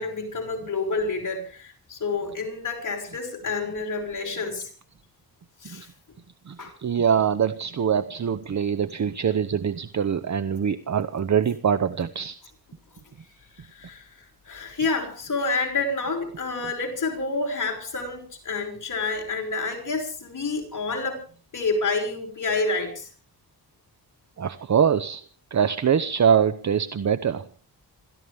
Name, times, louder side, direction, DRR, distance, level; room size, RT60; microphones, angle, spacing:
voice 1, 0.0-4.7 5.6-5.9 6.6-6.7 13.5-14.1 14.4-23.1, left 3 dB, 50° left, 1 dB, 5.9 m, -29 dB
voice 2, 6.5-12.4 24.4-25.2 25.5-27.4, right 7 dB, 45° right, 13 dB, 0.8 m, -23 dB
27.5 x 14.0 x 3.5 m, 0.39 s
wide cardioid pair, 125°, 39 cm